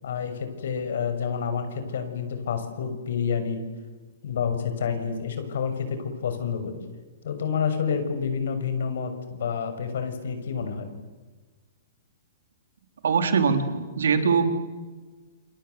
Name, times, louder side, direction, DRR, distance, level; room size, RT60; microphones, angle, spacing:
voice 1, 0.0-3.6 4.2-6.8 7.2-10.9, left 6 dB, 70° left, 8 dB, 6.4 m, -29 dB
voice 2, 13.0-14.4, right 5 dB, 85° right, 8 dB, 4.1 m, -22 dB
29.0 x 24.5 x 8.1 m, 1.3 s
hypercardioid pair, 155°, 0 cm